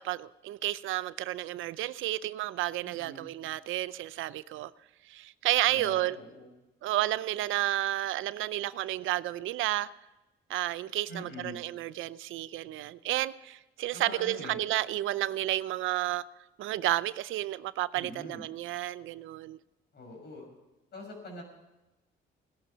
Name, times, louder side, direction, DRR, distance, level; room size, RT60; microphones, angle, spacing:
voice 1, 0.0-4.7 5.1-6.2 6.8-9.9 10.5-16.2 16.6-19.6, right 15 dB, 85° right, 0.6 m, -31 dB
voice 2, 2.8-3.2 5.7-6.5 11.1-11.6 13.9-14.6 17.9-18.4 19.9-20.5 20.9-21.4, left 1 dB, 55° left, 6.2 m, -44 dB
17.0 x 11.0 x 5.7 m
cardioid pair, 90°, 20 cm